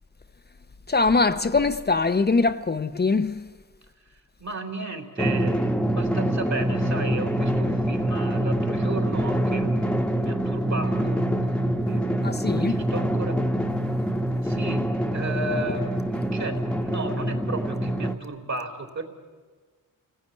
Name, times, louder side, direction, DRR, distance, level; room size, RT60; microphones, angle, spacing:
voice 1, 0.9-3.5 12.2-12.8, left 3 dB, 30° left, 0.8 m, -22 dB
voice 2, 4.4-11.2 11.9-12.3 12.5-13.4 14.4-14.8 15.1-19.0, right 2 dB, 55° right, 3.9 m, -34 dB
Drum, 5.2-18.1, right 1 dB, 5° left, 1.3 m, -25 dB
29.0 x 19.0 x 9.5 m
wide cardioid pair, 100°, 33 cm